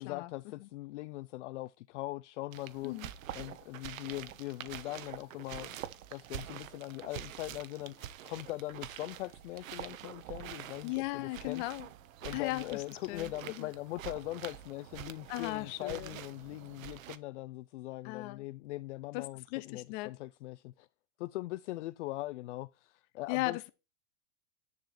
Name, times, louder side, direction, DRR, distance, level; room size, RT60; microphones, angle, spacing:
voice 1, 0.0-2.9 3.4-5.8 6.1-11.6 12.2-20.9 21.2-23.6, left 18 dB, 60° left, 0.5 m, -41 dB
sound 1, 2.5-17.2, right 11 dB, 70° right, 1.2 m, -46 dB
voice 2, 10.8-11.9 12.3-12.8 13.1-13.7 15.3-16.1 18.0-18.5 19.1-20.1 23.3-23.7, left 20 dB, 35° left, 1.0 m, -37 dB
10.5 x 4.9 x 4.4 m
supercardioid pair, 160°, 41 cm